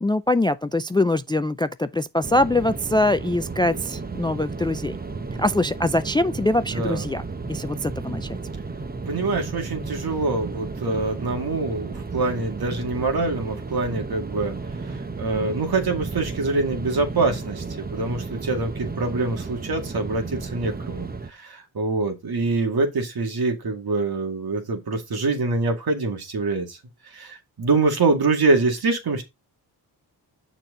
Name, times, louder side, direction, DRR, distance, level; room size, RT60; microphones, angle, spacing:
voice 1, 0.0-5.0 5.4-8.3, left 2 dB, 10° left, 0.3 m, -23 dB
sound 1, 2.2-21.3, right 4 dB, 20° right, 0.9 m, -33 dB
voice 2, 6.7-7.0 9.1-14.5 14.9-26.8 27.1-29.2, right 3 dB, 60° right, 2.2 m, -25 dB
6.6 x 6.1 x 3.8 m
cardioid pair, 80°, 41 cm